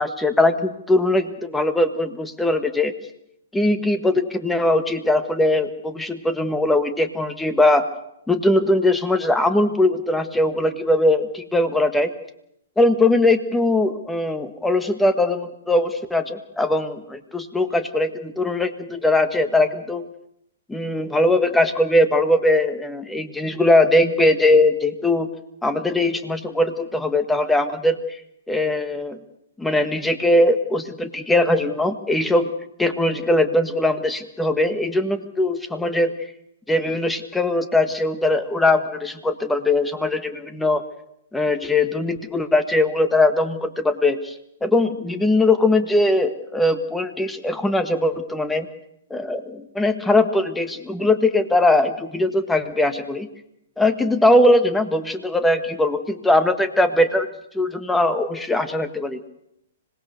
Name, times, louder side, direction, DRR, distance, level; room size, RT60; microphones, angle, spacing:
voice 1, 0.0-2.9 3.5-7.8 8.3-12.1 12.8-20.1 20.7-25.3 25.6-28.0 28.5-29.2 29.6-32.5 32.8-36.1 36.7-40.8 41.3-44.3 44.6-48.7 49.1-53.3 53.8-57.3 57.6-59.2, left 2 dB, 5° left, 10 dB, 1.6 m, -20 dB
25.5 x 19.0 x 6.8 m, 0.77 s
hypercardioid pair, 125°, 0 cm